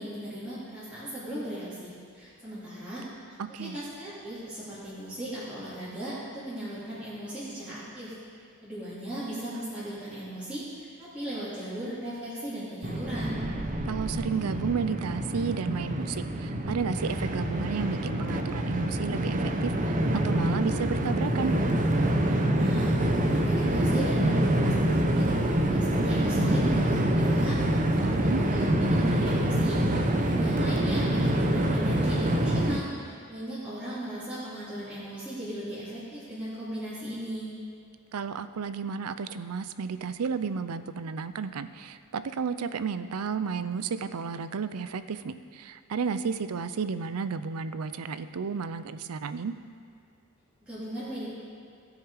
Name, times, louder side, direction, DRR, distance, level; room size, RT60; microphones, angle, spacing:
voice 1, 0.0-3.0 3.6-8.2 8.6-13.4 22.2-24.3 24.6-37.5 50.6-51.3, right 1 dB, 5° right, -13 dB, 2.9 m, -37 dB
voice 2, 3.4-3.8 13.9-21.6 28.0-28.4 38.1-49.5, right 5 dB, 85° right, 12 dB, 0.5 m, -32 dB
Train, 12.8-32.8, right 1 dB, 35° right, 0.8 m, -26 dB
17.0 x 6.4 x 4.8 m, 2.2 s
head